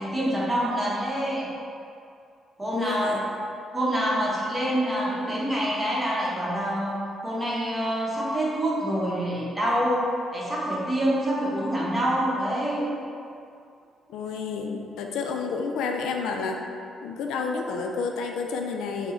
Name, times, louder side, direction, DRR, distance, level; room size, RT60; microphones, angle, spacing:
voice 1, 0.0-1.5 2.6-3.2 3.7-6.9 7.2-13.0, equal, 15° right, -6 dB, 1.0 m, -26 dB
voice 2, 2.7-3.2 14.1-16.6 17.0-19.1, left 4 dB, 90° left, 2 dB, 0.3 m, -30 dB
4.3 x 2.1 x 4.3 m, 2.4 s
cardioid pair, 90°, 0 cm